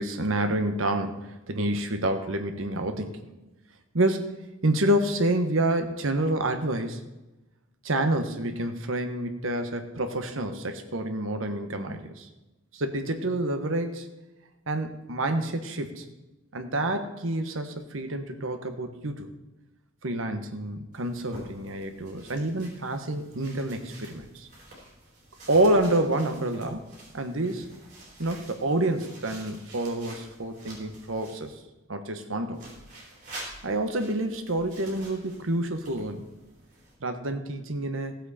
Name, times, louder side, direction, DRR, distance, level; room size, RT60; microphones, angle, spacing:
voice 1, 0.0-3.2 3.9-4.4 4.6-7.0 7.8-12.3 12.7-14.1 14.7-16.0 16.5-19.3 20.0-24.5 25.5-26.9 27.1-27.7 28.2-31.6 31.9-32.6 33.6-36.3 37.0-38.2, right 1 dB, 70° right, 6 dB, 1.2 m, -28 dB
sound 1, 20.9-31.5 32.5-37.0, right 1 dB, 40° right, 4.7 m, -48 dB
15.5 x 7.9 x 4.2 m, 1.0 s
head